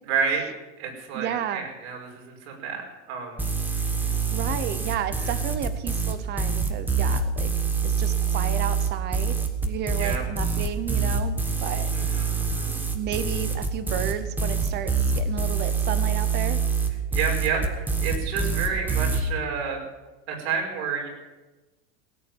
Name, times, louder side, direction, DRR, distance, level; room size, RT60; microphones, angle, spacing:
voice 1, 0.1-0.5 0.8-4.1 5.2-5.3 7.7-7.8 10.0-10.2 11.9-12.8 17.1-19.8 20.3-21.1, right 5 dB, 65° right, 1 dB, 5.3 m, -30 dB
voice 2, 1.1-1.7 4.3-7.5 7.8-9.3 9.6-11.9 12.9-16.6, right 9 dB, 30° right, 13 dB, 0.9 m, -32 dB
sound 1, 3.4-19.2, right 5 dB, 5° right, 1.3 m, -25 dB
17.5 x 8.3 x 9.2 m, 1.2 s
supercardioid pair, 150°, 36 cm